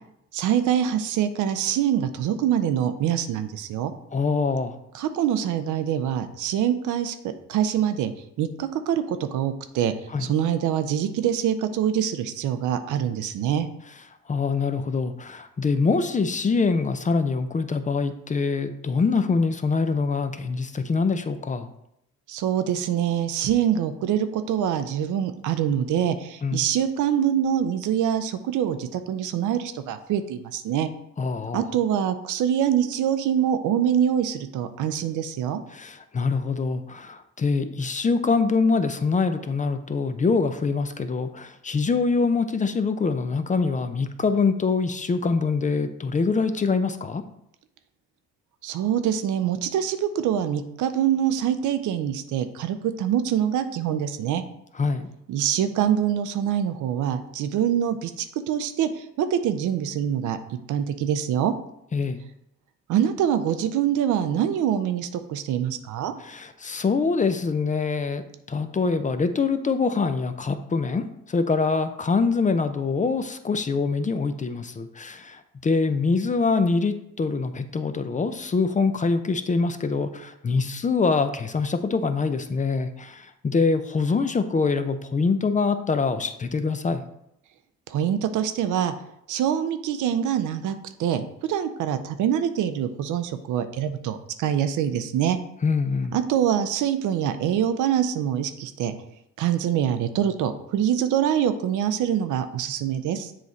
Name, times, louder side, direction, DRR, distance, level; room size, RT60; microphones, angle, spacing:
voice 1, 0.3-3.9 4.9-8.1 8.4-9.9 10.2-13.7 22.3-30.9 31.5-35.6 48.6-54.4 55.3-60.4 60.7-61.5 62.9-66.1 87.9-88.9 89.3-90.7 91.0-95.4 96.1-98.9 99.4-103.3, right 9 dB, 80° right, 10 dB, 0.6 m, -25 dB
voice 2, 4.1-4.7 10.1-10.3 14.3-21.7 26.4-26.7 31.2-31.7 35.7-47.2 54.8-55.1 61.9-62.2 66.2-87.0 95.6-96.2, left 4 dB, 25° left, 10 dB, 0.5 m, -24 dB
7.5 x 3.1 x 4.0 m, 0.78 s
cardioid pair, 90°, 30 cm